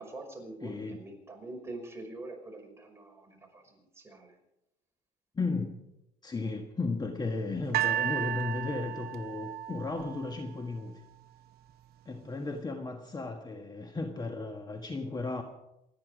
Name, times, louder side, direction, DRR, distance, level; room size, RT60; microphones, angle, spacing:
voice 1, 0.0-4.4, right 2 dB, 15° right, 1 dB, 5.8 m, -45 dB
voice 2, 0.6-1.0 5.3-5.8 6.2-11.0 12.0-15.4, left 3 dB, 25° left, 5 dB, 1.5 m, -35 dB
sound 1, 7.7-10.9 11.7-11.8, right 11 dB, 70° right, 1.0 m, -33 dB
28.5 x 10.0 x 5.0 m, 0.88 s
cardioid pair, 110°, 17 cm